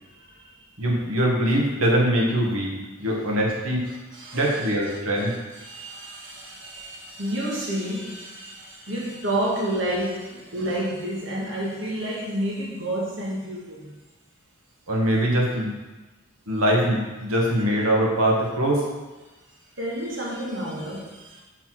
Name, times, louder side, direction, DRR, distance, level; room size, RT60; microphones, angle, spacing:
voice 1, 0.1-0.6 3.9-13.9 19.8-21.4, right 1 dB, 60° right, -4 dB, 1.6 m, -30 dB
voice 2, 0.8-3.9 4.3-5.3 14.9-15.7 16.5-18.9, right 1 dB, 80° right, -2 dB, 1.9 m, -22 dB
6.8 x 6.0 x 4.6 m, 1.1 s
head